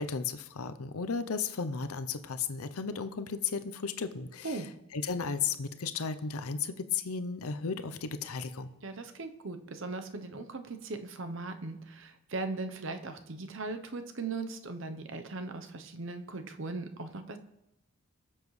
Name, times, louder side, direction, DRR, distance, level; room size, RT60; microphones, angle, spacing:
voice 1, 0.0-4.6 4.9-8.7, left 5 dB, 85° left, 11 dB, 0.7 m, -34 dB
voice 2, 8.8-17.4, right 3 dB, 60° right, 8 dB, 0.8 m, -39 dB
21.5 x 7.3 x 3.2 m, 0.90 s
head